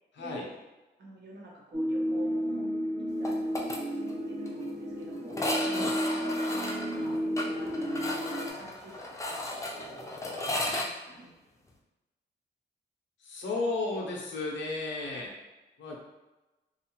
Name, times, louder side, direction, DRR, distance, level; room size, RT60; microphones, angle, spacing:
voice 1, 0.2-0.6 1.0-2.7 3.2-4.0 4.3-5.5 5.9-8.2 8.5-11.3, right 2 dB, 70° right, -4 dB, 0.9 m, -48 dB
sound 1, 1.7-8.5, equal, 30° right, 0.8 m, -32 dB
sound 2, 3.2-3.8 4.1-4.2 4.5-4.6 5.3-10.9, left 1 dB, 15° left, 0.5 m, -34 dB
voice 2, 13.2-15.3 15.8-16.0, left 3 dB, 85° left, -1 dB, 0.7 m, -33 dB
2.5 x 2.4 x 2.9 m, 1.1 s
cardioid pair, 70°, 19 cm